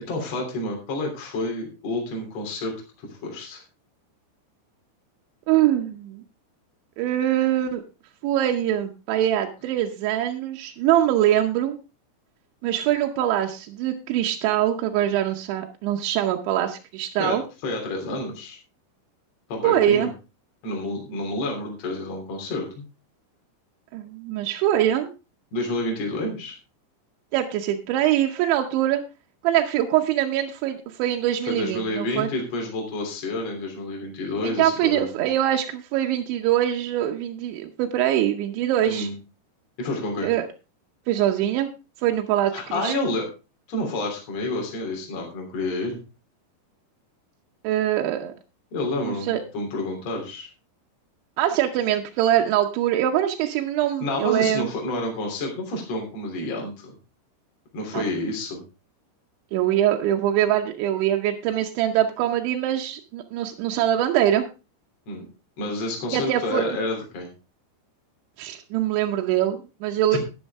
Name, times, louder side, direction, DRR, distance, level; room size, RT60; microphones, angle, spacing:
voice 1, 0.1-2.7 3.2-3.6 17.2-17.4 17.6-18.6 19.5-20.1 20.6-22.8 25.5-26.5 31.4-35.1 38.9-39.1 39.8-40.3 42.5-43.3 43.7-46.0 48.7-50.5 54.0-56.9 57.7-58.6 65.1-65.3 65.6-67.3, left 2 dB, 40° left, 1 dB, 4.0 m, -29 dB
voice 2, 5.5-6.2 7.0-7.8 8.2-11.8 12.6-17.4 19.6-20.1 23.9-25.1 27.3-29.0 29.4-32.3 34.4-39.1 40.2-40.5 41.1-41.7 42.0-42.9 47.6-48.3 49.0-49.4 51.4-54.7 57.9-58.0 59.5-64.5 66.1-66.8 68.4-70.2, right 12 dB, 85° right, 2 dB, 3.2 m, -23 dB
12.0 x 10.5 x 3.5 m, 0.30 s
omnidirectional pair, 5.3 m